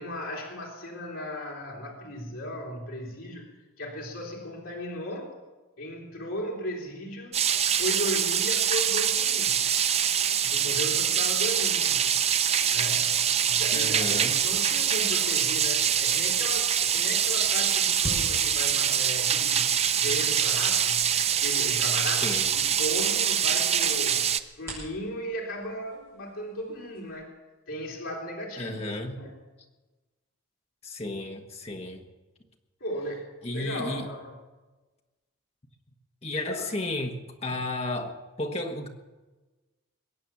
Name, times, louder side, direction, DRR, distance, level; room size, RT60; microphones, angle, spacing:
voice 1, 0.0-5.3 5.8-7.4 7.7-9.6 10.4-12.1 12.7-13.1 13.5-21.1 21.4-24.3 24.6-27.3 27.7-29.4 32.8-34.3 36.3-36.6 37.5-37.6, equal, 70° left, -2 dB, 3.0 m, -36 dB
sound 1, 7.3-24.4, right 8 dB, 30° right, 0.5 m, -24 dB
sound 2, 13.3-27.2, right 1 dB, 10° right, 5.8 m, -46 dB
voice 2, 13.7-14.3 22.2-22.5 28.6-29.2 30.8-32.0 33.4-34.0 36.2-38.9, left 2 dB, 30° left, 4 dB, 1.4 m, -33 dB
22.0 x 8.7 x 7.2 m, 1.2 s
head